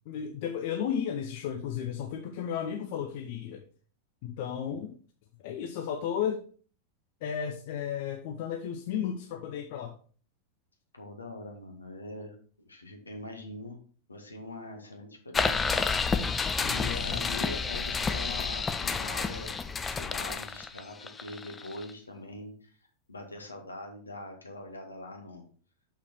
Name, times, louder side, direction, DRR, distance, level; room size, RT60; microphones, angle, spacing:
voice 1, 0.1-3.6 4.2-5.0 5.4-6.4 7.2-9.9 16.6-17.3, left 8 dB, 50° left, 5 dB, 0.8 m, -34 dB
voice 2, 10.9-12.3 12.7-13.8 14.1-19.6 19.9-22.7 23.1-25.4, left 2 dB, 80° left, 2 dB, 1.8 m, -43 dB
Caçadors de sons - Sons de por, 15.3-21.9, left 5 dB, 15° left, 0.5 m, -30 dB
6.7 x 5.8 x 4.3 m, 0.43 s
figure-of-eight pair, 90°, 0 cm